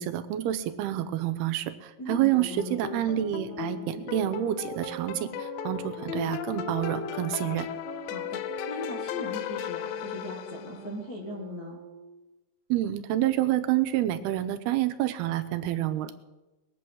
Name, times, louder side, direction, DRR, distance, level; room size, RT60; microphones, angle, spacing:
voice 1, 0.0-7.7 12.7-16.2, right 13 dB, 85° right, 10 dB, 2.8 m, -28 dB
voice 2, 2.0-2.8 8.0-11.8, left 1 dB, 55° left, -3 dB, 1.0 m, -39 dB
sound 1, 2.1-11.0, left 12 dB, 80° left, 2.3 m, -36 dB
sound 2, 2.3-12.3, right 7 dB, 65° right, 2.7 m, -44 dB
21.0 x 8.5 x 6.3 m, 1.1 s
omnidirectional pair, 4.5 m